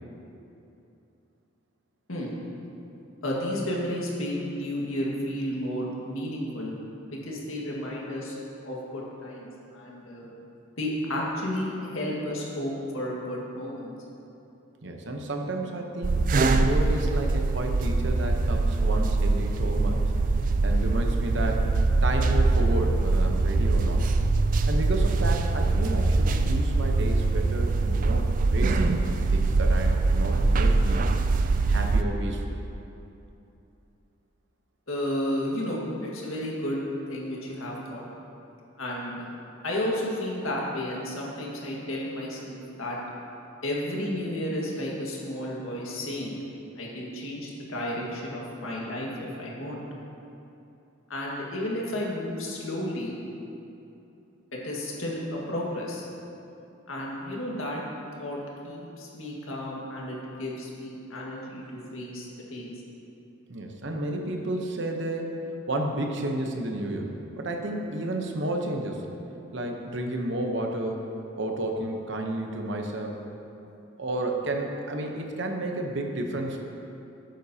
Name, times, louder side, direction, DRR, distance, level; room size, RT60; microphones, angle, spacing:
voice 1, 3.2-6.7 7.1-8.4 8.7-10.3 10.8-13.9 34.9-38.0 38.8-39.3 39.6-43.0 43.6-46.4 46.8-49.8 51.1-53.2 54.5-56.1 56.9-57.8 58.2-62.7, left 1 dB, 75° left, -4 dB, 1.7 m, -32 dB
voice 2, 14.8-20.1 20.6-21.7 22.0-24.1 24.7-31.0 31.7-32.6 63.5-65.3 65.7-69.1 69.5-71.0 71.4-73.2 74.0-76.7, right 1 dB, 55° right, 2 dB, 0.9 m, -31 dB
sound 1, 16.0-32.0, right 3 dB, 40° right, 0.3 m, -23 dB
11.5 x 9.0 x 2.8 m, 2.8 s
head